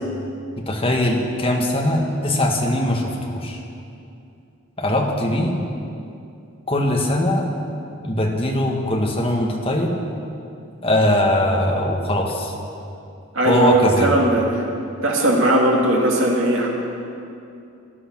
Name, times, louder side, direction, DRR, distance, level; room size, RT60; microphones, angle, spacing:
voice 1, 0.7-3.6 4.8-5.5 6.7-7.4 8.0-9.9 10.8-12.5 13.4-14.1, left 1 dB, 25° left, 0 dB, 1.7 m, -21 dB
voice 2, 13.3-14.6 15.0-16.7, right 1 dB, 60° right, -2 dB, 2.6 m, -18 dB
16.5 x 11.0 x 6.2 m, 2.6 s
head